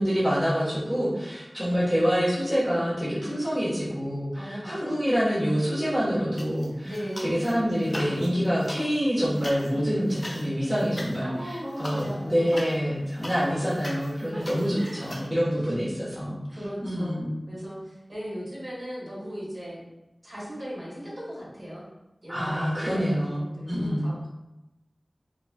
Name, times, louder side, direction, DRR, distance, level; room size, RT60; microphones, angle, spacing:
voice 1, 0.0-6.9 7.2-16.4 16.8-17.4 22.3-24.0, equal, 25° right, -9 dB, 1.1 m, -26 dB
voice 2, 4.3-5.0 6.8-7.6 11.2-12.6 14.3-14.4 14.8-15.1 16.5-17.2 17.5-19.8 20.2-21.9 22.2-24.3, equal, 50° right, -7 dB, 1.2 m, -37 dB
sound 1, 6.3-7.5 7.8-15.3, left 1 dB, 35° left, 0.5 m, -41 dB
3.8 x 2.3 x 2.2 m, 0.95 s
wide cardioid pair, 50°, 0 cm